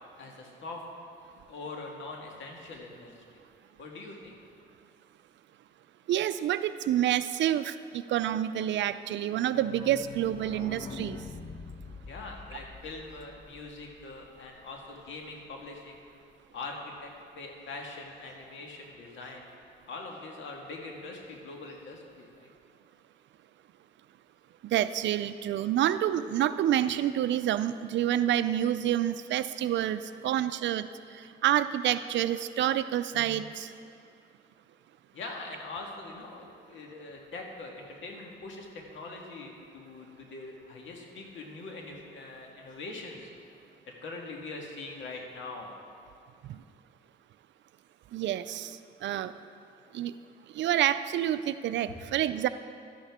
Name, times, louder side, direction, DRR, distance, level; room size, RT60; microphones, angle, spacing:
voice 1, 0.2-0.8 1.5-3.1 3.8-4.3 12.1-16.0 16.5-19.5 19.9-22.5 35.1-43.3 43.8-45.7 51.9-52.0, left 3 dB, 75° left, 1 dB, 1.8 m, -42 dB
voice 2, 6.1-11.2 24.6-30.9 31.1-33.7 46.4-46.6 48.1-49.3 49.9-50.1 50.5-52.5, right 11 dB, 65° right, 12 dB, 0.5 m, -28 dB
sound 1, 9.1-14.7 15.0-15.1 15.3-15.4 15.7-15.8, left 4 dB, 25° left, 0.7 m, -45 dB
12.5 x 10.5 x 3.6 m, 2.4 s
cardioid pair, 90°, 20 cm